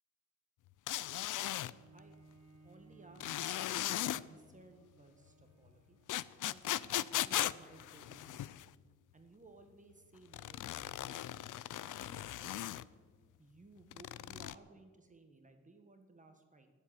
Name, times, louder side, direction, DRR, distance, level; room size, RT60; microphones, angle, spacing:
sound 1, 0.9-1.7 3.2-4.2 6.1-8.7 10.3-12.8 13.9-14.6, left 13 dB, 80° left, 0.5 m, -38 dB
voice 1, 1.2-1.5 1.9-2.4 2.6-3.8 4.1-6.0 6.4-8.6 9.1-12.8 13.4-16.7, right 3 dB, 25° right, 5 dB, 1.4 m, -60 dB
Bowed string instrument, 1.6-7.2 7.8-7.9, right 3 dB, 60° right, 3.1 m, -63 dB
19.0 x 7.9 x 9.8 m, 1.5 s
wide cardioid pair, 150°, 30 cm